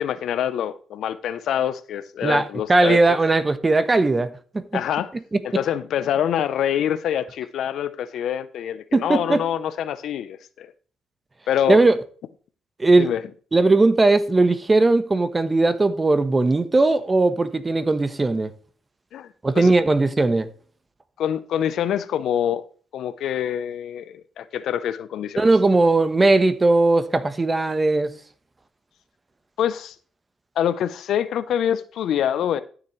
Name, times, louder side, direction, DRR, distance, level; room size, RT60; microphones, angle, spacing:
voice 1, 0.0-3.2 4.7-5.1 5.4-10.7 11.5-11.8 13.0-13.2 19.1-19.3 19.5-19.7 21.2-22.7 22.9-25.4 29.6-29.9 30.6-32.6, left 10 dB, 75° left, 0.6 m, -25 dB
voice 2, 2.2-4.6 5.3-5.4 8.9-9.4 11.7-12.0 12.8-13.1 13.5-18.5 19.4-20.5 25.4-28.1, right 2 dB, 25° right, 1.1 m, -18 dB
13.0 x 7.2 x 3.2 m
cardioid pair, 90°, 0 cm